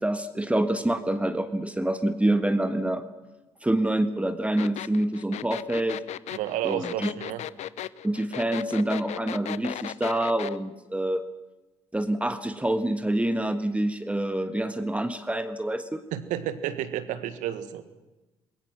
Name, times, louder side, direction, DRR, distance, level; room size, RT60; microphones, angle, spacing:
voice 1, 0.0-3.0 3.6-6.0 6.6-7.1 8.0-11.2 11.9-16.0, right 1 dB, 10° right, 9 dB, 1.5 m, -26 dB
sound 1, 4.6-10.6, left 12 dB, 50° left, 0.7 m, -36 dB
voice 2, 6.3-7.4 16.1-17.8, right 11 dB, 60° right, 11 dB, 1.7 m, -31 dB
28.5 x 21.5 x 6.2 m, 1.1 s
figure-of-eight pair, 50°, 14 cm